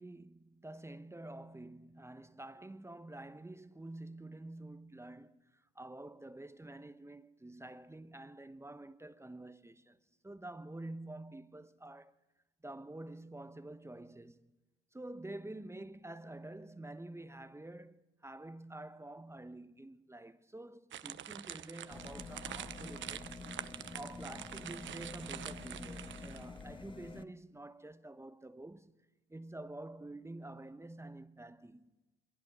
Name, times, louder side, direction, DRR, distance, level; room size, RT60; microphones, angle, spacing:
voice 1, 0.0-12.2 12.6-14.5 14.9-23.5 23.9-28.9 29.3-31.9, right 2 dB, 10° right, 1.1 m, -48 dB
sound 1, 20.9-26.6, right 11 dB, 40° right, 0.9 m, -46 dB
sound 2, 21.9-27.2, left 4 dB, 15° left, 1.5 m, -48 dB
29.0 x 23.0 x 6.3 m
hypercardioid pair, 65°, 29 cm